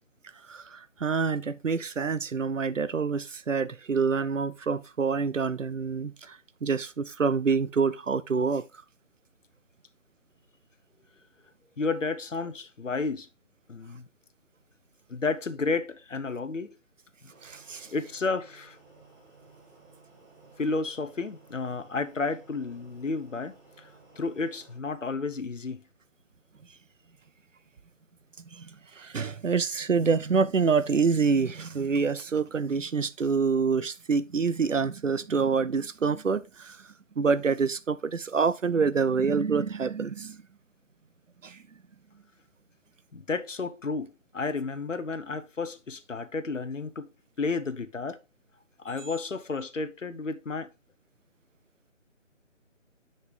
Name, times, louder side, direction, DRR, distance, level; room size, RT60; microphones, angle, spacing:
voice 1, 0.5-8.6 17.4-17.9 28.5-36.9 37.2-40.4 41.4-41.6, right 5 dB, 70° right, 0.7 m, -27 dB
voice 2, 11.8-13.3 13.7-14.1 15.1-16.8 17.9-18.8 20.6-23.9 24.2-25.8 43.1-47.1 47.4-48.2 48.8-50.7, left 4 dB, 70° left, 1.0 m, -32 dB
sound 1, 17.3-24.8, right 3 dB, 15° right, 2.1 m, -56 dB
6.4 x 5.4 x 3.8 m
figure-of-eight pair, 155°, 39 cm